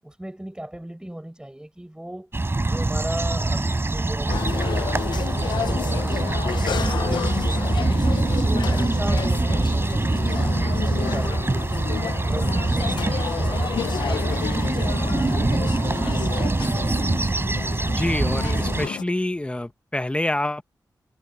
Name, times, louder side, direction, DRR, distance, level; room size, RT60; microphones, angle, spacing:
voice 1, 0.0-2.3 2.6-7.7 8.2-10.4 10.9-11.8 12.2-16.3, right 1 dB, 10° right, 7.9 m, -38 dB
sound 1, 2.3-18.9, right 2 dB, 30° right, 5.4 m, -24 dB
sound 2, 4.3-19.0, left 7 dB, 90° left, 0.8 m, -31 dB
voice 2, 17.9-20.6, left 1 dB, 15° left, 1.3 m, -26 dB
cardioid pair, 50°, 7 cm